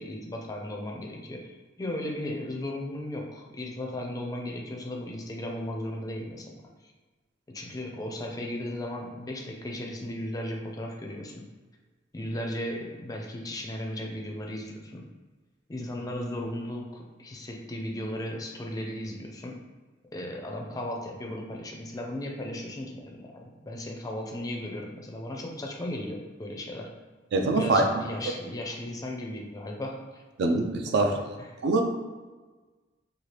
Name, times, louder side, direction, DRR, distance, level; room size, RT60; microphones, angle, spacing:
voice 1, 0.0-6.6 7.5-11.5 12.1-15.0 15.7-19.6 20.1-26.9 27.6-30.2 30.9-31.0 31.4-31.6, left 1 dB, 20° left, 0 dB, 0.4 m, -36 dB
voice 2, 27.3-27.9 30.4-31.1 31.6-31.9, right 2 dB, 60° right, 3 dB, 0.3 m, -23 dB
2.8 x 2.3 x 3.1 m, 1.3 s
head